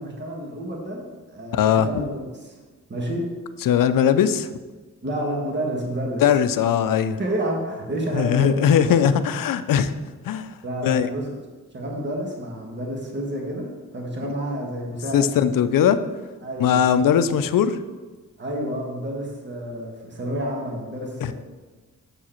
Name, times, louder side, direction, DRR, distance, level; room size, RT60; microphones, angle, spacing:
voice 1, 0.0-2.6 2.9-3.3 5.0-6.2 7.2-9.3 10.6-11.3 11.7-13.7 13.9-15.6 16.4-17.0 18.4-21.3, right 1 dB, 35° right, 0 dB, 1.4 m, -29 dB
voice 2, 1.5-1.9 3.7-4.5 6.2-7.2 8.1-9.9 10.3-10.5 10.8-11.1 15.1-16.0 16.6-17.8 21.2-21.3, left 8 dB, 75° left, 12 dB, 0.5 m, -19 dB
7.1 x 4.7 x 4.4 m, 1.3 s
cardioid pair, 80°, 33 cm